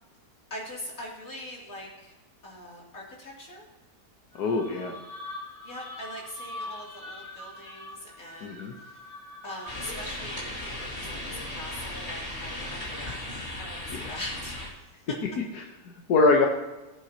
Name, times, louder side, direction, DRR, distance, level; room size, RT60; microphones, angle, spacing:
voice 1, 0.5-2.1 2.4-3.6 5.6-8.7 9.4-13.2 13.6-14.5, left 1 dB, 60° left, -4 dB, 3.6 m, -41 dB
sound 1, 4.3-10.0, left 2 dB, 10° left, 3.9 m, -43 dB
voice 2, 4.4-4.9 8.4-8.7 13.9-14.2 15.5-16.5, left 3 dB, 85° left, 1 dB, 1.6 m, -24 dB
sound 2, 9.7-14.7, left 1 dB, 45° left, 3.0 m, -36 dB
19.5 x 8.2 x 2.9 m, 1.1 s
omnidirectional pair, 1.6 m